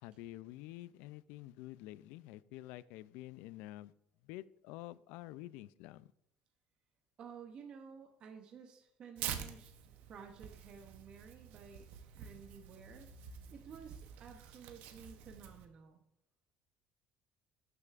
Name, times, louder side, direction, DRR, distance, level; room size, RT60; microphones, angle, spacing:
voice 1, 0.0-3.9 4.2-6.1, left 16 dB, 80° left, 0.3 m, -49 dB
voice 2, 7.2-9.7 10.1-11.9 12.1-13.1 13.5-16.0, right 6 dB, 35° right, 0.7 m, -53 dB
Tearing, 9.2-15.7, right 9 dB, 65° right, 0.8 m, -47 dB
12.0 x 6.5 x 2.4 m
cardioid pair, 175°, 3 cm